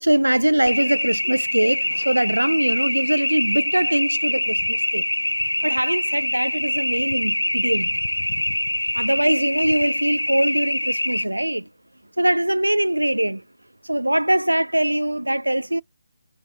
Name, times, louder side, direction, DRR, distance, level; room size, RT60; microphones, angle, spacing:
voice 1, 0.0-5.0 5.6-8.0 8.9-11.6 12.2-13.4 13.9-15.8, right 1 dB, 80° right, 0.3 m, -22 dB
sound 1, 0.7-11.3, left 1 dB, 75° left, 0.3 m, -24 dB
4.1 x 2.2 x 4.4 m
figure-of-eight pair, 150°, 0 cm